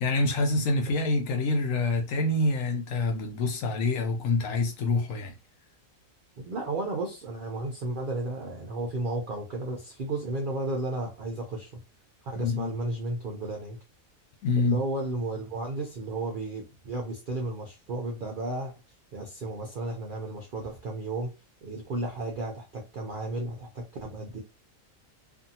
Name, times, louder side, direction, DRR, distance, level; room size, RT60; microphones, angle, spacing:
voice 1, 0.0-5.3 12.4-12.7 14.4-14.8, left 3 dB, 75° left, 0.9 m, -26 dB
voice 2, 6.4-11.7 12.2-13.8 14.6-18.7 19.1-21.3 21.6-24.4, right 2 dB, 60° right, 0.5 m, -33 dB
2.6 x 2.5 x 2.7 m
omnidirectional pair, 1.4 m